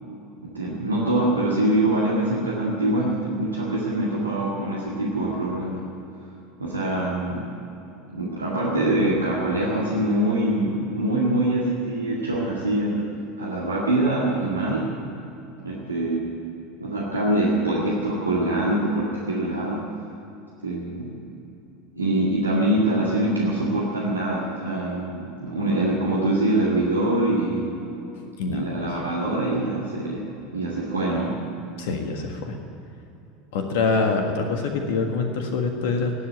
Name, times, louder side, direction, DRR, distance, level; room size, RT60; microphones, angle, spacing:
voice 1, 0.4-5.8 6.6-7.5 8.1-13.1 13.4-14.9 15.6-16.4 16.8-19.9 20.6-21.1 21.9-27.7 28.5-31.4, right 1 dB, 85° right, -5 dB, 2.1 m, -24 dB
voice 2, 28.4-28.7 31.8-32.5 33.5-36.1, left 4 dB, 65° left, 4 dB, 1.6 m, -25 dB
19.0 x 7.8 x 9.7 m, 3.0 s
figure-of-eight pair, 80°, 0 cm